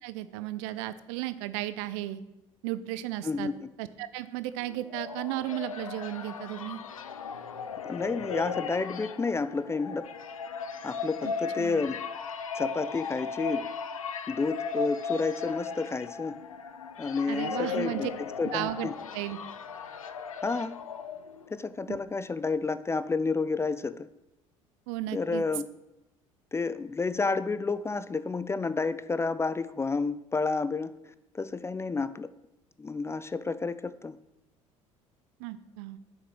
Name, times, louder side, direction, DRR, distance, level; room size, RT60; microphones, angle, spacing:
voice 1, 0.0-2.2 2.6-3.5 3.8-6.8 11.2-11.3 11.6-11.8 17.3-18.1 18.5-19.4 21.9-22.0 24.9-25.4 35.4-36.0, right 15 dB, 60° right, 13 dB, 0.6 m, -34 dB
voice 2, 3.2-3.6 7.8-10.1 10.8-12.0 12.6-13.6 14.3-16.4 17.0-18.1 18.4-18.9 20.4-20.8 21.5-24.1 25.1-25.6 26.5-30.9 31.3-32.3 32.8-34.2, left 4 dB, 15° left, 15 dB, 0.4 m, -30 dB
sound 1, 4.6-21.6, left 5 dB, 80° left, 0.5 m, -37 dB
8.8 x 6.1 x 6.1 m, 0.94 s
figure-of-eight pair, 60°, 17 cm